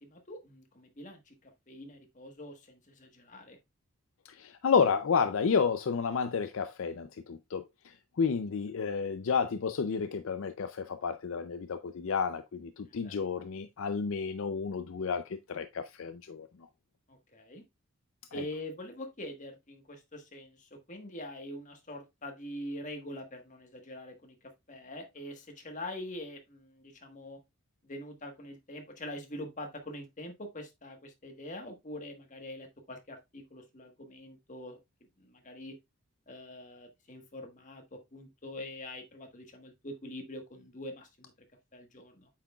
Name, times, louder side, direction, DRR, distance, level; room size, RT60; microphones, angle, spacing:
voice 1, 0.0-3.6 12.9-13.2 17.1-17.6 18.3-27.4 27.8-34.8 35.2-35.8 36.3-41.3 41.7-42.3, left 1 dB, 35° left, 1.3 m, -44 dB
voice 2, 4.3-7.6 8.2-16.5 18.4-18.5, left 6 dB, 65° left, 0.4 m, -31 dB
8.4 x 5.8 x 2.3 m
head